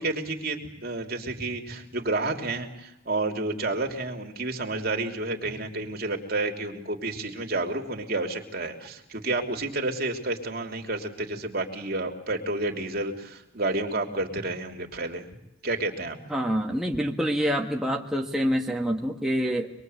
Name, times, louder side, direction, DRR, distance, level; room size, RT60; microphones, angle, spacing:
voice 1, 0.0-15.3 15.6-16.2, right 2 dB, 50° right, 3 dB, 3.3 m, -30 dB
voice 2, 16.3-19.7, equal, ahead, 0 dB, 1.7 m, -26 dB
26.0 x 22.5 x 8.1 m, 0.84 s
head